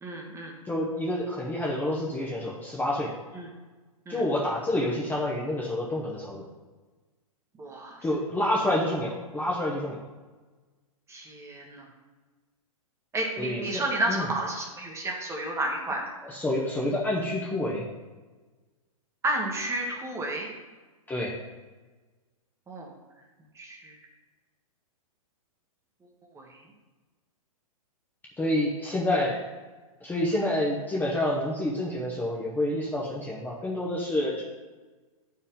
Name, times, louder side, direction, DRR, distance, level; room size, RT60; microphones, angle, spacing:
voice 1, 0.0-0.5 3.3-3.5 4.1-4.2 7.6-8.0 11.1-11.9 13.1-16.1 19.2-20.5 22.7-22.9 23.5-23.9 26.3-26.6 28.9-29.0, right 1 dB, 15° right, 0 dB, 1.1 m, -31 dB
voice 2, 0.7-3.1 4.1-6.4 8.0-10.0 13.4-13.8 14.1-14.3 16.2-17.9 21.1-21.3 28.4-29.4 30.0-34.4, left 1 dB, 10° left, -4 dB, 0.9 m, -28 dB
8.5 x 4.7 x 3.6 m, 1.3 s
hypercardioid pair, 130°, 19 cm